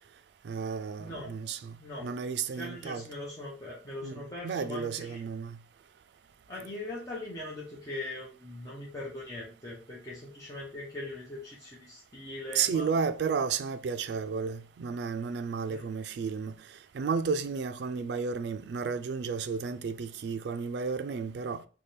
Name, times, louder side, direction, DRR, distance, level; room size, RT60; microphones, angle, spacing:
voice 1, 0.4-1.8 2.0-3.1 4.0-5.6 12.5-16.5 16.9-21.6, right 5 dB, 70° right, 0.3 m, -32 dB
voice 2, 1.0-1.3 1.8-2.1 2.5-5.2 6.5-13.0 15.7-15.8, left 1 dB, 20° left, 0.7 m, -41 dB
3.3 x 2.2 x 4.1 m
head